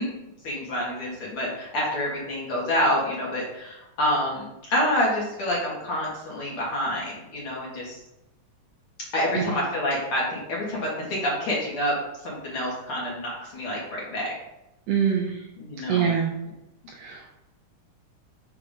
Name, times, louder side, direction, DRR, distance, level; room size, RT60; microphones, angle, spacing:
voice 1, 0.4-8.0 9.1-12.0 12.2-14.3 15.6-16.1, left 1 dB, 50° left, -4 dB, 2.1 m, -27 dB
voice 2, 14.9-15.4 15.9-16.3 17.0-17.3, right 8 dB, 75° right, 1 dB, 1.6 m, -24 dB
7.2 x 2.9 x 5.2 m, 0.91 s
omnidirectional pair, 3.5 m